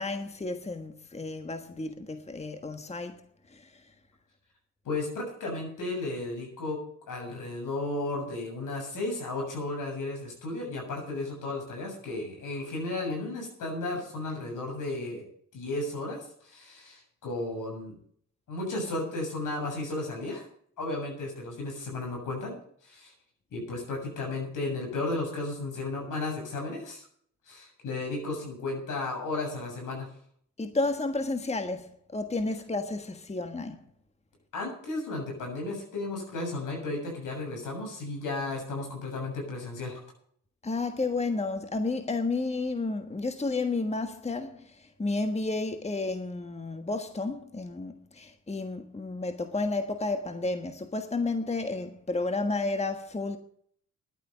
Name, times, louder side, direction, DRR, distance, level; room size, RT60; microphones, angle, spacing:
voice 1, 0.0-3.2 3.5-3.8 30.6-33.8 40.6-53.4, left 3 dB, 20° left, 1.4 m, -31 dB
voice 2, 4.8-6.8 7.1-15.3 15.5-18.0 18.5-20.4 20.8-23.1 23.5-27.0 27.5-30.1 34.5-40.0, left 2 dB, 75° left, 7.4 m, -34 dB
11.5 x 9.0 x 8.1 m
cardioid pair, 65°, 31 cm